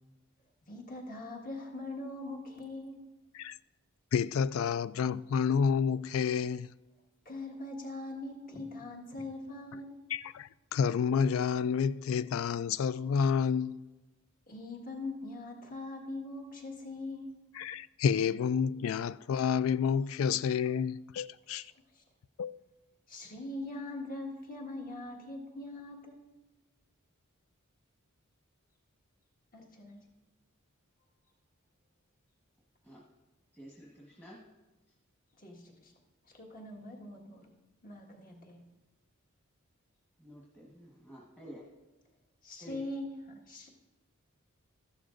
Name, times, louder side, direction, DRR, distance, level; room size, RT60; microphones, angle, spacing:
voice 1, 0.7-3.0 7.2-10.1 14.5-17.3 21.6-22.0 23.1-26.3 29.5-30.0 35.4-35.9 36.2-37.5 37.8-38.7 42.4-43.7, left 2 dB, 40° left, 1.6 m, -42 dB
voice 2, 4.1-6.7 10.1-13.8 17.6-21.7 22.4-22.6, left 6 dB, 65° left, 0.3 m, -29 dB
voice 3, 33.5-34.4 40.2-41.7 42.6-42.8, equal, 10° left, 1.3 m, -50 dB
14.0 x 11.5 x 2.6 m
head